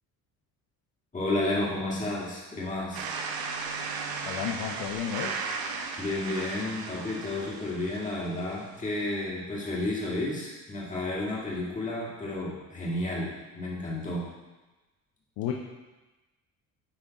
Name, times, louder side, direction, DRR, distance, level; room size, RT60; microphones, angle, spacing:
voice 1, 1.1-3.0 6.0-14.3, left 2 dB, 20° left, -5 dB, 2.0 m, -31 dB
sound 1, 2.9-8.7, right 5 dB, 90° right, 0.9 m, -36 dB
voice 2, 4.3-5.4 15.4-15.5, left 9 dB, 85° left, 1 dB, 0.8 m, -32 dB
10.5 x 3.7 x 4.0 m, 1.1 s
cardioid pair, 145°, 35 cm